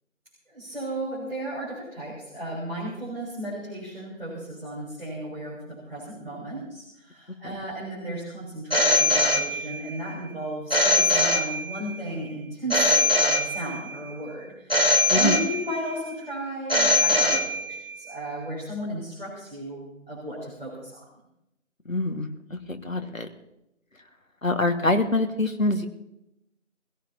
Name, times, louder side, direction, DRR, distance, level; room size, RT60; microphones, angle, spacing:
voice 1, 0.5-21.0, right 1 dB, 45° right, -6 dB, 6.3 m, -35 dB
Telephone, 8.7-10.0 10.7-12.0 12.7-14.0 14.7-16.0 16.7-17.9, left 2 dB, 45° left, 1.4 m, -22 dB
voice 2, 21.9-23.3 24.4-25.9, left 2 dB, 75° left, 6 dB, 1.8 m, -25 dB
23.5 x 17.0 x 2.9 m, 0.86 s
figure-of-eight pair, 180°, 40 cm